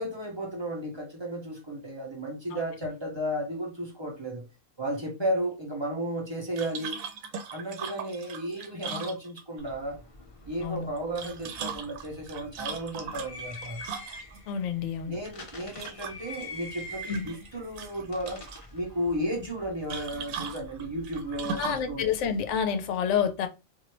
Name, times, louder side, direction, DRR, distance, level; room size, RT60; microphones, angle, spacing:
voice 1, 0.0-4.5 4.8-7.0 7.5-10.0 10.5-13.8 15.1-18.4 18.7-22.1, right 1 dB, 25° right, 0.7 m, -33 dB
sound 1, 6.6-9.7 11.0-14.4 15.7-16.5 16.8-17.5 17.8-18.6 19.9-21.9, right 6 dB, 85° right, 1.0 m, -38 dB
sound 2, 9.6-22.6, left 1 dB, 40° left, 0.5 m, -46 dB
voice 2, 14.5-15.2 17.1-17.3 21.6-23.5, left 7 dB, 70° left, 0.9 m, -28 dB
3.0 x 2.5 x 2.9 m
omnidirectional pair, 1.4 m